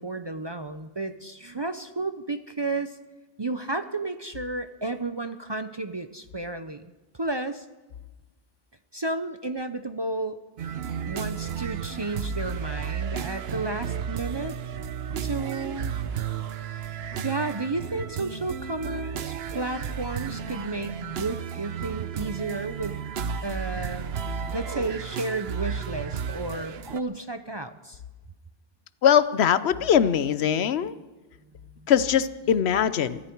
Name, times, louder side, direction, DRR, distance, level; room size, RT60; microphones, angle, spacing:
voice 1, 0.0-3.0 3.4-7.7 8.9-10.4 11.0-14.6 15.2-15.9 17.2-23.1 23.4-24.1 24.5-28.0 31.8-31.9, right 2 dB, 30° right, 9 dB, 0.5 m, -32 dB
sound 1, 10.6-27.0, right 7 dB, 75° right, 1.0 m, -33 dB
voice 2, 29.0-30.9 31.9-33.2, left 8 dB, 85° left, 15 dB, 1.0 m, -21 dB
23.5 x 13.5 x 4.6 m, 1.2 s
omnidirectional pair, 1.1 m